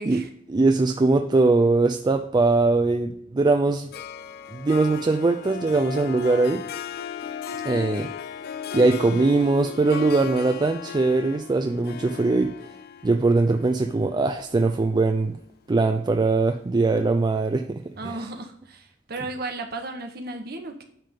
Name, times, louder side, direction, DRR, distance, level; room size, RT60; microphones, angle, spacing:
voice 1, 0.5-3.9 4.5-6.6 7.6-8.1 8.7-12.5 13.0-15.4 15.7-18.2, right 3 dB, 25° right, 6 dB, 0.3 m, -21 dB
Harp, 3.9-15.3, left 8 dB, 55° left, 0.4 m, -36 dB
voice 2, 18.0-20.8, right 2 dB, 55° right, 6 dB, 1.0 m, -34 dB
8.9 x 3.5 x 5.1 m, 0.65 s
head